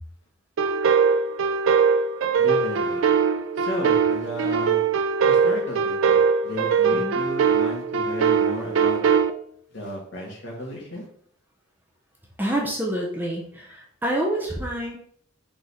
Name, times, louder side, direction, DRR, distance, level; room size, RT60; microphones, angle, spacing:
sound 1, 0.6-9.3, right 6 dB, 70° right, 0.4 m, -21 dB
voice 1, 2.4-3.0 3.6-4.8 5.3-9.0 9.7-11.1, equal, 55° left, -1 dB, 1.4 m, -34 dB
voice 2, 12.4-15.0, right 1 dB, 10° right, -2 dB, 0.6 m, -27 dB
3.9 x 3.2 x 4.0 m, 0.64 s
head